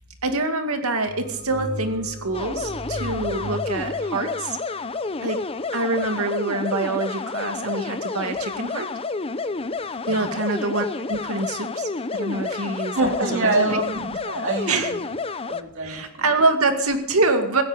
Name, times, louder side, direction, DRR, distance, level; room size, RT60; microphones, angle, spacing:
voice 1, 0.2-4.6 5.2-5.5 5.7-8.9 10.1-13.8 14.7-14.9 15.8-17.6, right 3 dB, 80° right, 6 dB, 2.3 m, -25 dB
sound 1, 1.0-5.4, right 1 dB, 45° right, 7.3 m, -36 dB
sound 2, 2.3-15.6, left 4 dB, 25° left, 0.7 m, -30 dB
voice 2, 10.0-10.4 12.9-15.0 15.5-16.2, right 2 dB, 60° right, 3 dB, 3.3 m, -25 dB
16.5 x 15.5 x 5.1 m, 0.73 s
head